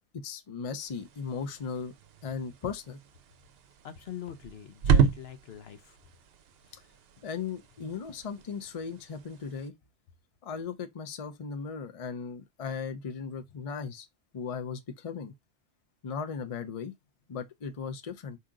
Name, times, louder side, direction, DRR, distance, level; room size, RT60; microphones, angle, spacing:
voice 1, 0.2-1.9 2.2-3.0 6.7-6.8 7.2-9.8 10.4-14.1 14.3-15.3 16.0-16.9 17.3-18.4, left 6 dB, 40° left, 0.6 m, -37 dB
sound 1, 0.8-9.7, right 7 dB, 65° right, 0.8 m, -32 dB
voice 2, 3.8-6.0, left 9 dB, 70° left, 0.9 m, -42 dB
4.9 x 2.8 x 3.7 m
omnidirectional pair, 1.1 m